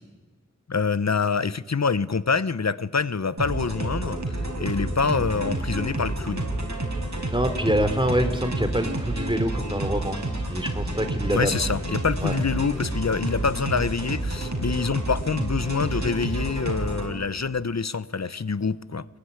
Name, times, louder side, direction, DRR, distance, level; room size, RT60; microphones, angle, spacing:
voice 1, 0.7-6.5 11.3-19.1, left 5 dB, 60° left, 0.9 m, -26 dB
sound 1, 3.4-17.1, right 1 dB, 65° right, 5.3 m, -29 dB
voice 2, 7.3-10.2 10.5-11.5 12.2-12.3, equal, 15° right, 3.3 m, -25 dB
24.5 x 21.5 x 9.8 m
wide cardioid pair, 45°, 30 cm